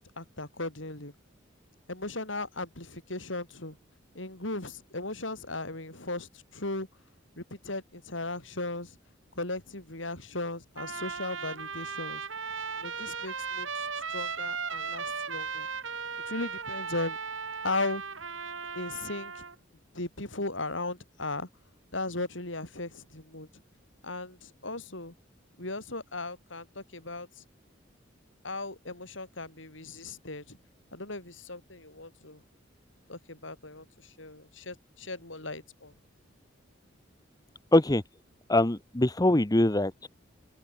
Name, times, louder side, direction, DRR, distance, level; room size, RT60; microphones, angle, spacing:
voice 1, 0.2-1.1 1.9-3.8 4.1-6.9 7.4-8.9 9.4-12.2 12.8-13.7 14.1-15.7 16.3-17.2 17.6-18.0 18.7-19.3 19.9-21.5 21.9-23.5 24.0-25.1 25.6-27.3 28.4-30.6 30.9-32.4 33.1-33.8 34.2-35.9, left 2 dB, 70° left, 6.5 m, -37 dB
Trumpet, 10.8-19.5, right 5 dB, 80° right, 7.2 m, -36 dB
voice 2, 37.7-38.0 38.5-40.1, left 1 dB, 20° left, 1.1 m, -23 dB
open air
head